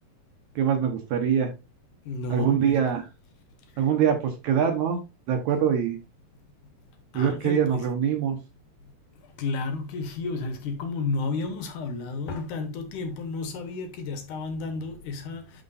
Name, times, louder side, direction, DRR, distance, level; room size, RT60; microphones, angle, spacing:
voice 1, 0.6-1.5 2.3-3.1 3.8-5.0 5.3-6.0 7.1-8.4, right 8 dB, 70° right, 1.9 m, -24 dB
voice 2, 2.0-2.7 3.7-3.9 7.1-7.9 9.1-15.6, left 3 dB, 70° left, 2.3 m, -32 dB
11.0 x 4.5 x 2.5 m
omnidirectional pair, 4.3 m